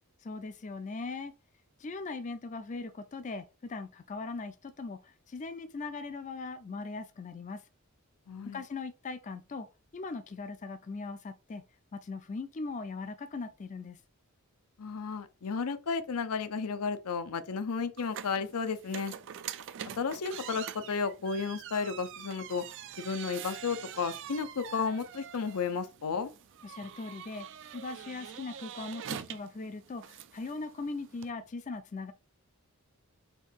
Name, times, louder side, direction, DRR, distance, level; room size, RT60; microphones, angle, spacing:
voice 1, 0.2-1.3 1.8-7.6 8.5-9.7 9.9-11.6 11.9-14.0 26.6-27.5 27.7-32.1, left 3 dB, 35° left, 0.4 m, -40 dB
voice 2, 8.3-8.6 14.8-19.1 20.0-22.6 23.0-26.3, left 5 dB, 85° left, 0.6 m, -33 dB
sound 1, 18.0-31.3, right 9 dB, 55° right, 0.3 m, -45 dB
4.4 x 2.6 x 4.6 m
head